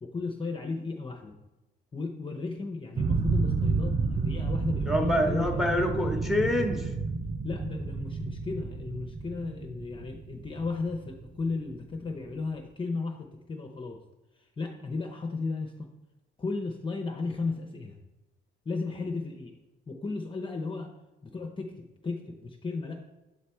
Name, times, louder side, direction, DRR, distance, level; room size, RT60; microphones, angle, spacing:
voice 1, 0.0-1.4 1.9-5.5 7.4-14.0 14.4-15.9 16.4-18.0 18.7-19.5 19.9-20.9 21.2-23.0, left 3 dB, 25° left, 2 dB, 0.6 m, -35 dB
sound 1, 3.0-11.8, right 4 dB, 25° right, 0.4 m, -31 dB
voice 2, 4.9-6.9, left 1 dB, ahead, 4 dB, 0.9 m, -26 dB
7.5 x 3.3 x 4.3 m, 1.0 s
cardioid pair, 90°, 20 cm